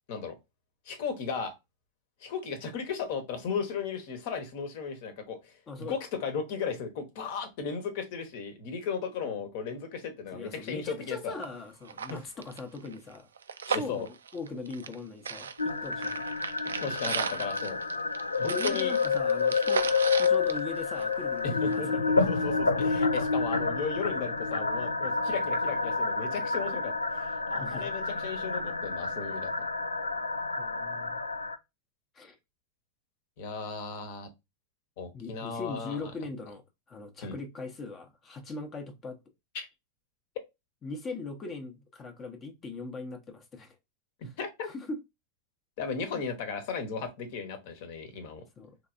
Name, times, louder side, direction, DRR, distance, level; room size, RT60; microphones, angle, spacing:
voice 1, 0.8-1.5 2.2-11.3 12.1-12.2 13.7-14.1 16.8-17.8 18.4-19.0 21.4-29.6 33.4-34.3 35.0-36.1 37.2-37.3 39.5-39.7 44.4-44.7 45.8-48.4, left 5 dB, 50° left, 1.1 m, -36 dB
voice 2, 5.7-6.0 9.2-9.4 10.3-13.3 13.7-16.2 17.0-17.5 18.5-19.9 20.2-22.0 27.6-27.9 30.6-31.2 32.1-32.4 35.1-39.2 40.8-43.8 44.2-44.3 44.7-45.0 46.1-46.2 48.6-48.8, left 3 dB, 25° left, 0.8 m, -40 dB
sound 1, 11.1-11.2 11.4-11.5 11.8-15.0 15.2-21.3 21.7-21.8, right 6 dB, 70° right, 0.4 m, -36 dB
sound 2, 15.6-31.6, left 4 dB, 80° left, 0.4 m, -29 dB
4.5 x 3.2 x 2.5 m
figure-of-eight pair, 90°, 0 cm